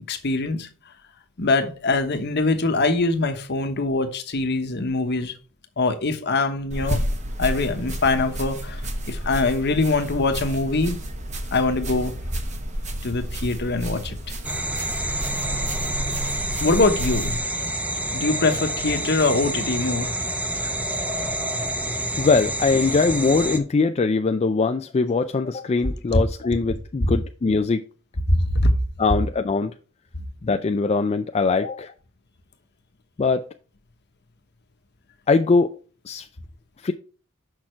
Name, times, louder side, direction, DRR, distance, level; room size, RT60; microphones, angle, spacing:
voice 1, 0.1-0.7 1.4-5.3 5.8-7.0 7.4-11.0 11.5-12.1 13.0-14.2 16.6-17.3 18.1-20.1 28.3-28.7 31.6-31.7, left 3 dB, 50° left, 1.1 m, -23 dB
sound 1, 6.7-17.4, equal, 35° right, 1.1 m, -31 dB
sound 2, 14.4-23.6, right 1 dB, 5° right, 0.7 m, -28 dB
voice 2, 22.2-27.8 29.0-29.7 30.4-31.9 33.2-33.5 35.3-35.7 36.1-36.3 36.8-36.9, left 4 dB, 30° left, 0.4 m, -21 dB
6.4 x 5.9 x 4.4 m
head